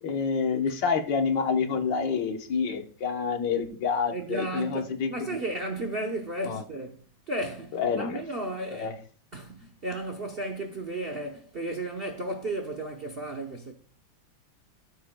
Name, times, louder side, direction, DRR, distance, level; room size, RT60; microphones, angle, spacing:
voice 1, 0.0-5.4 6.4-6.6 7.7-8.2 8.7-8.9, left 5 dB, 70° left, 1.8 m, -28 dB
voice 2, 4.1-8.9 9.3-13.7, right 1 dB, 45° right, 0.8 m, -34 dB
13.0 x 9.3 x 2.2 m
omnidirectional pair, 2.1 m